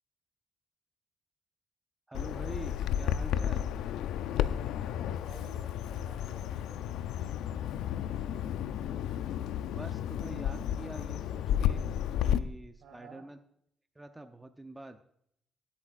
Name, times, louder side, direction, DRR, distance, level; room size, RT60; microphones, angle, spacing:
Bird vocalization bird call bird song, 2.1-12.4, left 10 dB, 90° left, 0.4 m, -32 dB
voice 1, 2.1-3.7 9.7-11.9 12.2-13.4 14.0-15.0, right 2 dB, 15° right, 7 dB, 0.7 m, -45 dB
voice 2, 4.9-8.5 12.8-13.2, right 4 dB, 80° right, 4 dB, 2.8 m, -54 dB
17.0 x 8.6 x 2.5 m, 0.70 s
cardioid pair, 90°, 0 cm